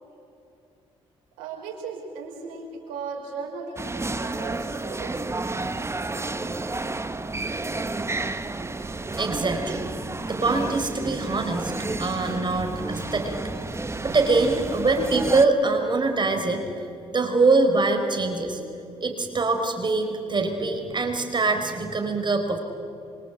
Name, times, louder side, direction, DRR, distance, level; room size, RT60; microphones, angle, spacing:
voice 1, 1.4-5.4, right 4 dB, 85° right, -1 dB, 5.3 m, -37 dB
sound 1, 3.8-15.5, right 2 dB, 20° right, 1.5 m, -31 dB
voice 2, 9.1-9.9 10.3-11.7 12.0-13.4 13.9-16.8 17.1-18.6 19.0-22.6, right 3 dB, 35° right, 4 dB, 4.9 m, -23 dB
26.0 x 25.5 x 8.4 m, 2.6 s
supercardioid pair, 55°, 13 cm